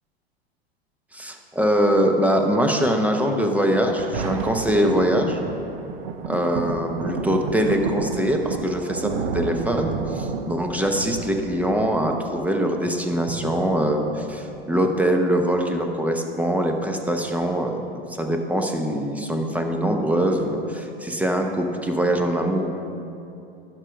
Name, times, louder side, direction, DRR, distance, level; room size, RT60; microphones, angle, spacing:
voice 1, 1.1-5.4 6.3-17.8 18.1-22.7, equal, 5° right, 3 dB, 0.8 m, -23 dB
Thunder, 3.6-14.6 15.3-15.4, right 5 dB, 65° right, 0.9 m, -31 dB
12.0 x 4.6 x 5.2 m, 2.7 s
hypercardioid pair, 100°, 31 cm